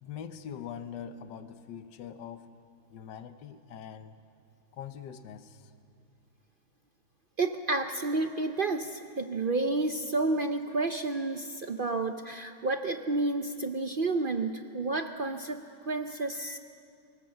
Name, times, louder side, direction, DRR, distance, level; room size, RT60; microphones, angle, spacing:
voice 1, 0.0-2.5 2.9-4.2 4.7-5.7, left 8 dB, 85° left, 10 dB, 1.5 m, -43 dB
voice 2, 7.4-16.6, right 3 dB, 65° right, 7 dB, 0.5 m, -30 dB
25.0 x 19.0 x 7.7 m, 2.4 s
omnidirectional pair, 1.9 m